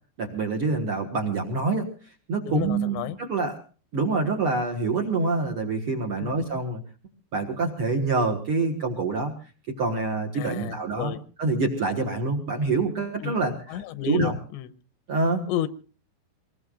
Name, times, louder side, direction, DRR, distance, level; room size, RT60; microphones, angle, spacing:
voice 1, 0.2-1.9 2.3-3.6 3.9-6.8 7.3-9.3 9.7-14.4 15.1-15.4, right 3 dB, 70° right, 1 dB, 1.3 m, -26 dB
voice 2, 2.5-3.2 6.2-6.4 10.3-11.2 13.2-13.4 13.7-14.7 15.5-15.7, left 11 dB, 90° left, 11 dB, 3.2 m, -31 dB
25.0 x 20.5 x 2.5 m, 0.38 s
omnidirectional pair, 5.0 m